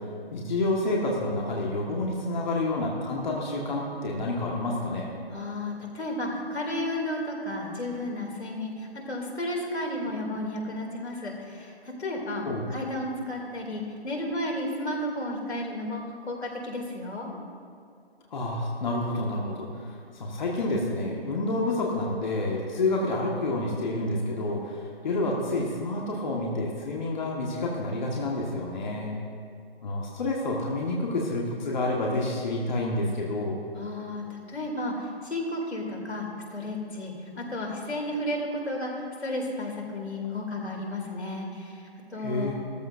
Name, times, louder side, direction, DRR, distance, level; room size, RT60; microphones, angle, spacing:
voice 1, 0.0-5.1 12.4-12.6 18.3-29.1 29.8-33.6 42.2-42.6, left 2 dB, 45° left, -2 dB, 1.7 m, -29 dB
voice 2, 5.3-17.3 33.8-42.5, left 1 dB, 90° left, 0 dB, 3.0 m, -33 dB
16.5 x 14.0 x 2.7 m, 2.3 s
hypercardioid pair, 160°, 32 cm